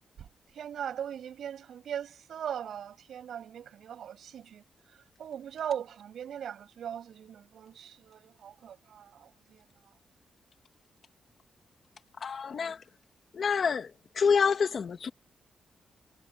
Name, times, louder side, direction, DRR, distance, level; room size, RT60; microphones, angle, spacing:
voice 1, 0.2-4.6 4.9-9.9, right 9 dB, 75° right, 6.7 m, -40 dB
voice 2, 12.2-12.8 13.3-13.9 14.1-15.1, left 6 dB, 45° left, 1.5 m, -27 dB
wide cardioid pair, 155°, 0 cm